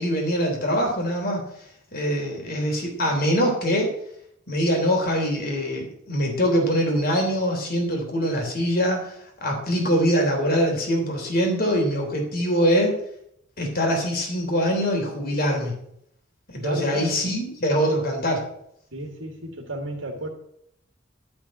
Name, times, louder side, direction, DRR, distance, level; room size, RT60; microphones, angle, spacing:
voice 1, 0.0-1.4 1.9-3.9 4.5-13.0 13.6-15.7 16.5-18.4, equal, 50° left, 1 dB, 3.2 m, -23 dB
voice 2, 16.6-17.2 18.9-20.3, right 1 dB, 90° right, 1 dB, 2.0 m, -32 dB
12.0 x 5.9 x 9.2 m, 0.72 s
head